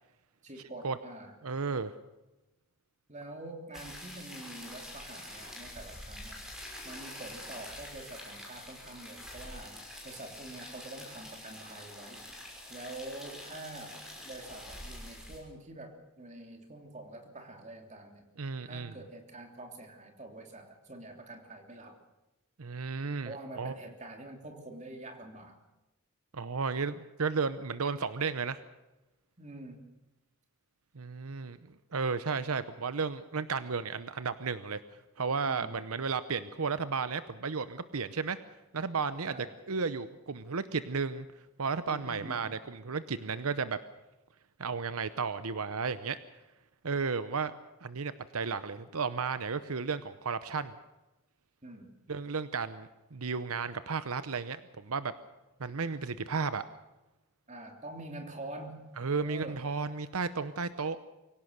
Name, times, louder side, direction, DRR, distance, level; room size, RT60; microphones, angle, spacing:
voice 1, 0.4-1.4 3.1-6.4 6.8-12.2 12.7-18.2 18.6-22.0 23.2-25.6 29.4-29.8 35.4-35.8 39.3-39.5 41.9-42.4 51.6-51.9 57.5-58.8 59.1-59.6, right 2 dB, 30° right, 4 dB, 3.1 m, -46 dB
voice 2, 1.4-1.9 18.4-18.9 22.6-23.7 26.3-28.6 30.9-31.6 31.9-34.8 35.2-38.4 38.7-39.4 39.7-41.3 41.6-43.8 44.6-46.2 46.8-47.5 47.8-50.7 52.1-55.1 55.6-56.6 59.0-61.0, right 5 dB, 80° right, 13 dB, 0.8 m, -33 dB
sound 1, 3.7-15.4, left 1 dB, ahead, 5.8 m, -46 dB
24.5 x 17.0 x 6.6 m, 1.0 s
head